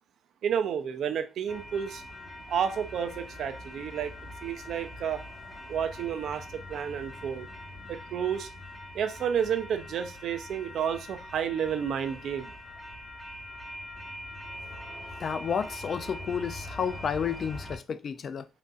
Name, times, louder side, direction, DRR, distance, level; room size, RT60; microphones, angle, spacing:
voice 1, 0.4-2.0 2.5-4.1 4.4-5.2 5.7-7.5 7.9-8.5 8.9-12.5, right 8 dB, 70° right, 0.4 m, -31 dB
sound 1, 1.5-17.8, left 1 dB, 5° left, 1.0 m, -43 dB
voice 2, 15.2-18.5, left 7 dB, 50° left, 0.3 m, -31 dB
3.9 x 2.5 x 2.4 m
cardioid pair, 90°, 0 cm